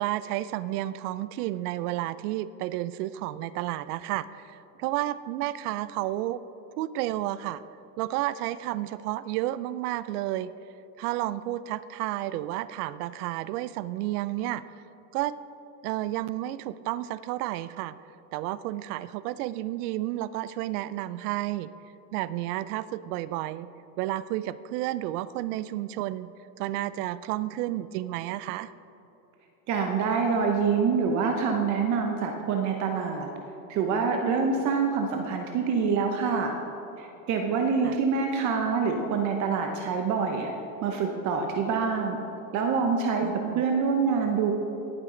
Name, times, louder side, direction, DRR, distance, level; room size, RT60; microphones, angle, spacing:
voice 1, 0.0-6.4 6.8-7.6 8.0-10.5 11.0-14.8 15.1-15.4 15.8-17.9 18.3-21.7 22.1-23.7 24.0-28.7 37.8-38.0 43.2-43.6, right 15 dB, 75° right, 16 dB, 0.6 m, -31 dB
voice 2, 29.7-33.3 33.7-36.6 37.0-40.5 40.8-42.2 42.5-43.3 43.5-44.5, right 5 dB, 40° right, 3 dB, 0.9 m, -26 dB
18.0 x 7.5 x 3.8 m, 3.0 s
supercardioid pair, 145°, 46 cm